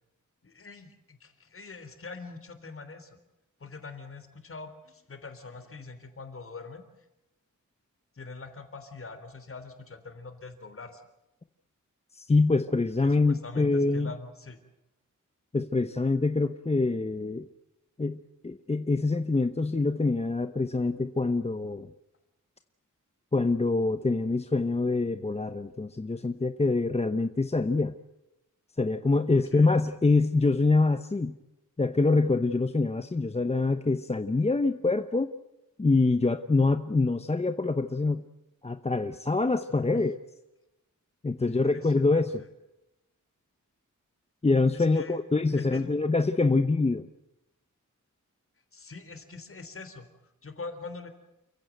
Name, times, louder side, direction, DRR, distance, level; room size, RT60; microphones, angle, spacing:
voice 1, 0.4-3.2 3.6-6.9 8.1-11.0 13.0-14.6 29.3-29.8 39.9-40.1 41.4-42.5 44.7-45.2 45.5-46.0 48.7-51.1, left 3 dB, 45° left, 9 dB, 3.6 m, -44 dB
voice 2, 12.1-14.1 15.5-17.5 18.0-21.9 23.3-28.0 28.8-31.4 31.8-35.3 35.8-38.2 38.6-40.2 41.2-42.4 44.4-47.1, left 3 dB, 20° left, 10 dB, 0.8 m, -25 dB
29.0 x 16.0 x 9.2 m, 0.92 s
wide cardioid pair, 150°, 31 cm